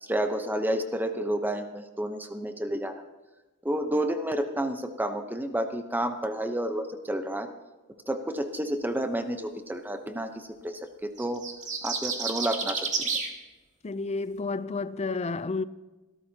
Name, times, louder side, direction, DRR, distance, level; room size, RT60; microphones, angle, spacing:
voice 1, 0.0-3.0 3.6-7.5 8.1-11.5 11.8-13.2, right 1 dB, 10° right, 0.8 m, -30 dB
sound 1, 11.2-13.3, right 5 dB, 35° right, 1.9 m, -30 dB
voice 2, 13.8-15.6, left 3 dB, 30° left, 0.5 m, -31 dB
25.0 x 13.5 x 2.8 m
head